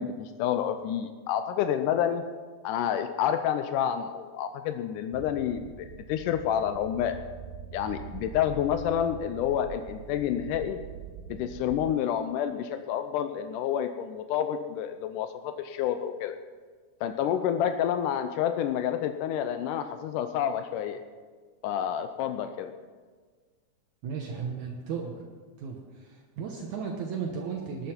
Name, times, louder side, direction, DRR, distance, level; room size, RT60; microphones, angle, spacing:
voice 1, 0.0-2.2 2.6-7.2 7.7-10.8 11.3-16.4 17.0-21.0 21.6-22.7, left 9 dB, 85° left, 9 dB, 2.2 m, -29 dB
sound 1, 5.1-11.9, right 9 dB, 85° right, 2.3 m, -44 dB
voice 2, 24.0-25.2 25.6-27.9, right 6 dB, 70° right, 0 dB, 2.4 m, -35 dB
20.0 x 9.4 x 4.5 m, 1.5 s
omnidirectional pair, 3.7 m